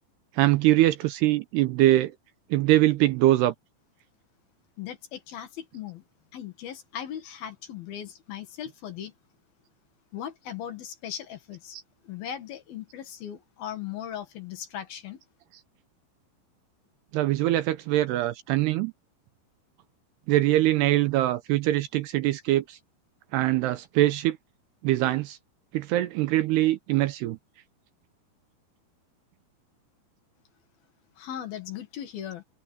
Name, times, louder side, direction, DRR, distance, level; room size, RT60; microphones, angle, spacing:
voice 1, 0.4-2.1 2.5-3.5 17.1-18.9 20.3-22.8 23.3-24.4 24.8-25.4 25.7-27.4, right 15 dB, 80° right, 2.5 m, -23 dB
voice 2, 4.8-6.0 6.3-9.1 10.1-11.8 12.0-15.2 31.2-32.4, left 10 dB, 60° left, 3.2 m, -38 dB
open air
omnidirectional pair, 5.3 m